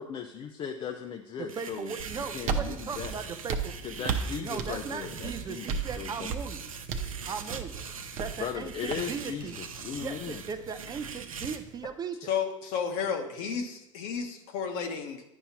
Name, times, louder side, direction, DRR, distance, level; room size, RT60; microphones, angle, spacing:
voice 1, 0.0-3.1 3.8-6.3 8.4-10.4, left 7 dB, 30° left, 5 dB, 0.5 m, -38 dB
voice 2, 1.4-3.7 4.4-6.7 7.3-7.8 8.2-9.6 10.0-12.2, right 6 dB, 25° right, 8 dB, 0.5 m, -38 dB
sound 1, 1.5-11.6, right 6 dB, 85° right, 0.7 m, -42 dB
sound 2, 2.0-11.9, right 6 dB, 45° right, 0.9 m, -36 dB
voice 3, 12.2-15.2, left 6 dB, 55° left, 5 dB, 1.2 m, -32 dB
10.5 x 5.5 x 2.9 m, 0.89 s
hypercardioid pair, 85°, 17 cm